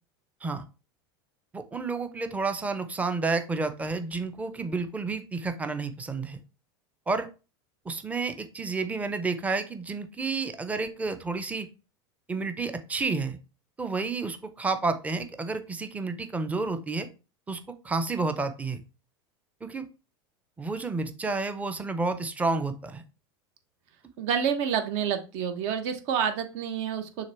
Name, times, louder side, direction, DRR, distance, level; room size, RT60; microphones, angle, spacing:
voice 1, 1.5-6.4 7.1-7.3 7.8-11.7 12.3-13.4 13.8-17.1 17.5-18.8 19.6-19.9 20.6-23.0, right 3 dB, 10° right, 9 dB, 0.6 m, -30 dB
voice 2, 24.2-27.3, right 7 dB, 60° right, 7 dB, 1.2 m, -28 dB
6.4 x 3.3 x 4.4 m, 0.32 s
supercardioid pair, 125°, 13 cm